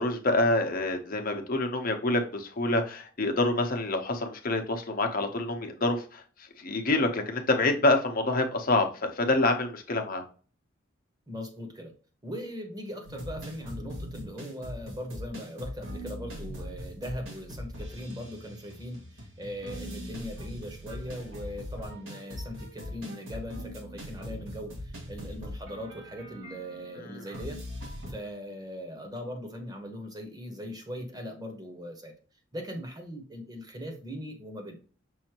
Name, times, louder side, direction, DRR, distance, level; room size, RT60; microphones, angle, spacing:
voice 1, 0.0-6.2 6.6-10.2, left 2 dB, 45° left, 4 dB, 0.9 m, -27 dB
voice 2, 11.3-11.9 12.2-32.1 32.5-34.8, equal, 20° right, 3 dB, 1.2 m, -40 dB
sound 1, 13.0-28.1, equal, 75° right, 1.7 m, -41 dB
6.3 x 2.8 x 2.9 m, 0.39 s
head